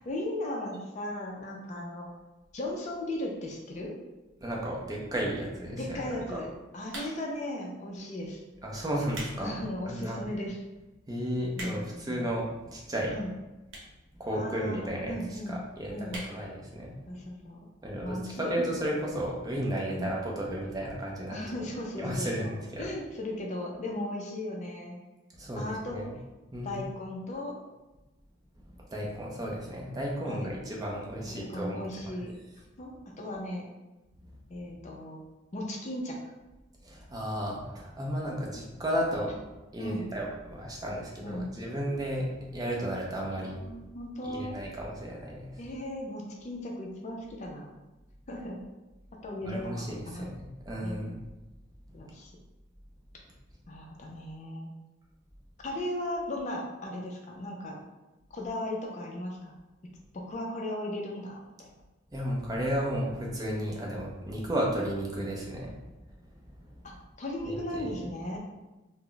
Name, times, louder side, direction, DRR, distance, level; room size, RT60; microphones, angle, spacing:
voice 1, 0.0-2.1 2.5-3.9 5.8-6.5 6.7-8.4 9.4-10.6 11.5-12.1 13.1-13.3 14.3-15.6 15.9-16.3 17.1-17.7 18.0-18.8 19.9-20.1 21.3-22.5 22.8-25.0 25.6-26.0 26.6-27.5 30.3-30.5 31.2-32.3 32.8-33.6 34.5-35.2 35.5-36.2 39.8-40.0 41.2-41.5 43.3-44.6 45.6-47.7 48.3-48.6 49.2-50.3 50.8-51.1 51.9-52.3 53.7-54.7 55.6-57.8 58.3-59.5 60.1-61.7 66.8-66.9 67.2-68.4, left 1 dB, 35° left, 0 dB, 0.4 m, -36 dB
voice 2, 4.4-6.4 8.6-9.6 9.8-10.2 11.1-13.1 14.2-17.0 17.8-21.6 22.0-22.9 25.4-26.1 26.5-26.8 28.6-32.2 36.8-39.4 39.7-43.6 44.2-45.6 49.4-51.2 62.1-65.7 66.6-66.7 67.4-67.9, equal, 20° right, -2 dB, 0.5 m, -33 dB
sound 1, 6.9-7.4 8.1-8.3 8.9-9.4 9.8-9.9 10.5-10.6 10.8-10.9 11.2-12.0 12.8-12.9 13.7-14.0 14.3-14.4 14.6-14.7 14.9-15.0 15.3-15.6 16.1-16.3 16.7-16.8 17.0-17.1, right 1 dB, 70° right, 0.8 m, -41 dB
2.2 x 2.0 x 3.8 m, 1.1 s
head